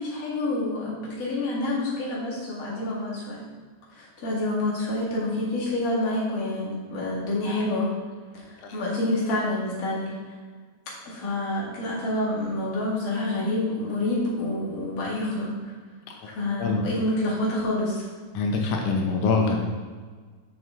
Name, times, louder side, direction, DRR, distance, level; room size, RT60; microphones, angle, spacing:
voice 1, 0.0-3.4 3.9-7.9 8.3-10.4 11.0-15.5 16.3-18.1, left 1 dB, 35° left, -5 dB, 1.7 m, -28 dB
voice 2, 18.3-19.6, left 4 dB, 80° left, 2 dB, 2.2 m, -24 dB
6.4 x 6.3 x 3.6 m, 1.5 s
omnidirectional pair, 3.6 m